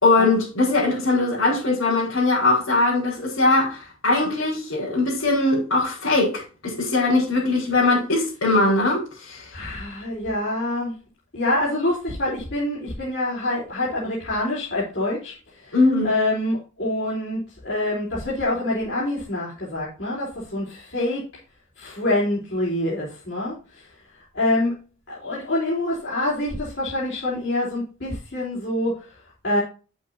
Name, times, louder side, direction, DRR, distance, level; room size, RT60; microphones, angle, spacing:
voice 1, 0.0-9.5 15.7-16.1, left 2 dB, 90° left, 5.1 m, -21 dB
voice 2, 9.5-11.0 11.3-21.3 21.8-24.8 25.1-29.6, left 1 dB, 60° left, 3.9 m, -26 dB
10.5 x 8.3 x 2.8 m
head